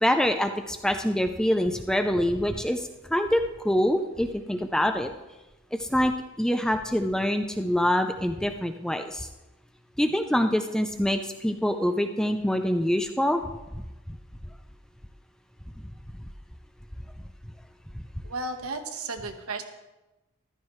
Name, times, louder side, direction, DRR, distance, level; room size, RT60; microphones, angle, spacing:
voice 1, 0.0-5.1 5.8-6.1 6.4-9.3 10.0-13.4 13.7-13.8, equal, 5° left, 6 dB, 0.4 m, -25 dB
voice 2, 18.2-19.6, right 3 dB, 85° right, 6 dB, 1.2 m, -34 dB
14.0 x 12.0 x 3.2 m, 1.0 s
head